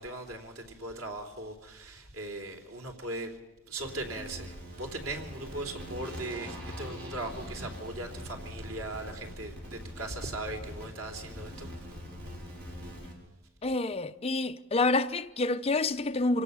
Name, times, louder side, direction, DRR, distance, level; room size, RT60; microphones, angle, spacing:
voice 1, 0.0-3.4 3.7-11.7, right 2 dB, 85° right, 3.6 m, -39 dB
sound 1, 3.8-13.1, equal, 55° right, 6.0 m, -43 dB
voice 2, 13.6-16.4, left 2 dB, 30° left, 0.7 m, -28 dB
25.5 x 18.0 x 7.0 m
head